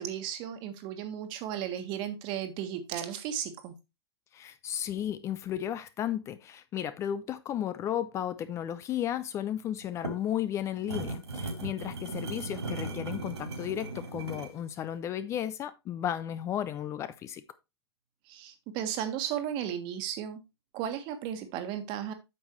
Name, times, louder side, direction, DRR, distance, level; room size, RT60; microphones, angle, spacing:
voice 1, 0.0-3.7 18.3-20.4 20.7-22.1, right 10 dB, 35° right, 1.5 m, -35 dB
voice 2, 4.3-17.4, left 10 dB, 20° left, 0.4 m, -34 dB
sound 1, 9.8-14.6, right 2 dB, 85° right, 3.3 m, -37 dB
8.7 x 6.3 x 3.0 m
hypercardioid pair, 125°, 14 cm